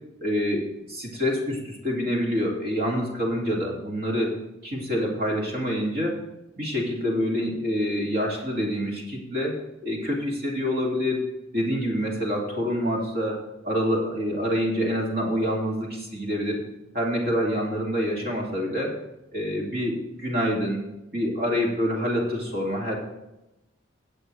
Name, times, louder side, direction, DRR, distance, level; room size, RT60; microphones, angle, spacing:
voice 1, 0.2-4.4 4.6-6.2 6.6-9.5 9.8-11.2 11.5-13.4 13.6-16.6 16.9-18.9 19.3-20.8 21.1-23.0, equal, 50° right, -1 dB, 2.5 m, -26 dB
16.5 x 8.0 x 3.3 m, 0.94 s
head